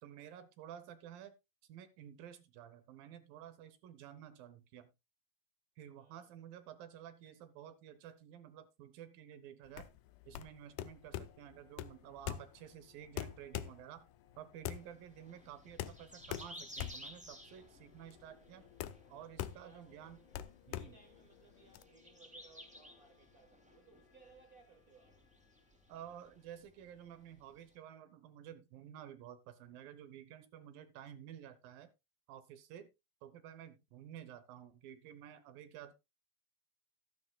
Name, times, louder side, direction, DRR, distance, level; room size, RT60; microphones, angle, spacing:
voice 1, 0.0-1.3 1.7-4.9 5.8-9.9 10.3-14.1 14.4-18.6 19.1-20.2 20.7-20.9 25.9-31.9 32.3-32.9 33.2-35.9, right 10 dB, 80° right, 2.5 m, -52 dB
voice 2, 6.0-6.3 18.3-19.9 20.7-25.2, right 4 dB, 55° right, 1.0 m, -64 dB
sound 1, 9.6-26.5, left 9 dB, 65° left, 2.9 m, -69 dB
sound 2, 9.7-21.8, left 13 dB, 80° left, 1.9 m, -44 dB
sound 3, 14.7-27.7, equal, 5° right, 1.8 m, -57 dB
12.5 x 12.5 x 2.2 m
omnidirectional pair, 4.2 m